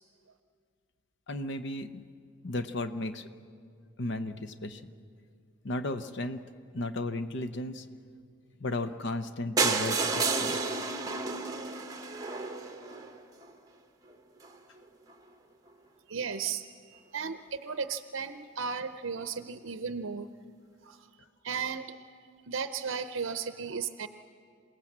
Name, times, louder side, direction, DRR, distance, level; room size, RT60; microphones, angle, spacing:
voice 1, 1.3-2.0 2.4-3.3 4.0-4.8 5.6-6.4 6.7-7.9 8.6-10.6, left 2 dB, 60° left, 11 dB, 0.8 m, -34 dB
sound 1, 9.6-13.5 14.1-14.2 14.4-14.5 14.8-14.9 15.1-15.2, right 4 dB, 20° right, 1.1 m, -31 dB
voice 2, 16.1-20.3 20.8-21.1 21.4-22.0 22.5-24.1, right 6 dB, 70° right, 10 dB, 0.6 m, -35 dB
27.0 x 18.0 x 7.3 m, 2.2 s
head